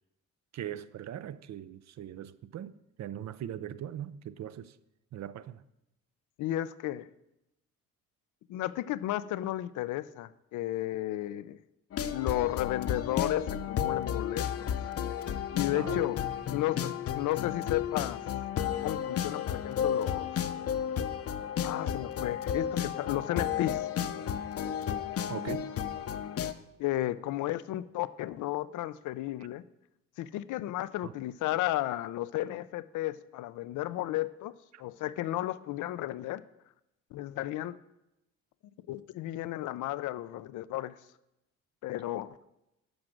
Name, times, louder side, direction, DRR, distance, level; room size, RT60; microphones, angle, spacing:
voice 1, 0.5-4.8 5.1-5.6 15.7-16.1 25.3-25.7 31.0-31.1 34.7-34.8, right 10 dB, 60° right, 0.6 m, -40 dB
voice 2, 6.4-7.1 8.5-11.6 12.1-14.7 15.5-16.2 16.5-18.2 18.8-20.3 21.6-23.9 26.8-29.6 30.2-34.5 34.8-36.4 37.1-37.8 38.9-41.0 41.8-42.4, left 15 dB, 85° left, 0.6 m, -33 dB
sound 1, 11.9-26.5, left 9 dB, 50° left, 0.8 m, -33 dB
12.5 x 5.0 x 7.7 m
cardioid pair, 90°, 30 cm